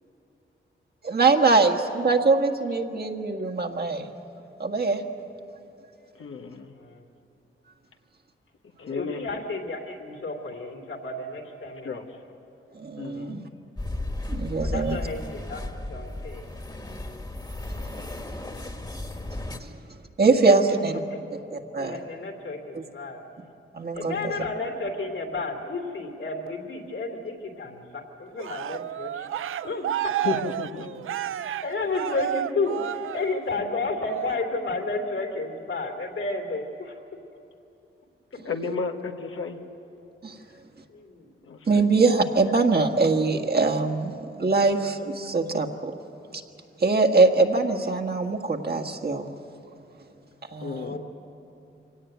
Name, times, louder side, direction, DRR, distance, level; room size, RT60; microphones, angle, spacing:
voice 1, 1.0-4.1 4.6-5.0 12.8-13.4 14.3-15.0 20.2-20.9 21.5-22.0 23.7-24.3 40.2-40.3 41.7-45.9 46.8-49.2 50.5-51.0, right 3 dB, 50° right, 3 dB, 1.7 m, -22 dB
voice 2, 6.2-6.7 8.8-9.2 11.8-12.2 13.0-13.4 18.0-18.2 30.2-31.0 38.4-39.6 41.4-41.8 50.6-51.0, left 5 dB, 85° left, 3 dB, 1.3 m, -33 dB
voice 3, 8.8-12.0 14.6-15.6 15.9-16.5 20.2-20.7 21.1-21.2 21.8-23.2 23.9-29.3 29.6-30.1 31.3-37.0 40.9-41.3 50.7-51.0, left 3 dB, 70° left, 3 dB, 3.1 m, -32 dB
sound 1, 13.8-19.6, left 1 dB, 20° left, 1.7 m, -34 dB
Cheering, 28.4-33.6 34.1-34.5, right 11 dB, 80° right, 0.5 m, -31 dB
24.0 x 17.5 x 9.2 m, 2.8 s
cardioid pair, 80°, 21 cm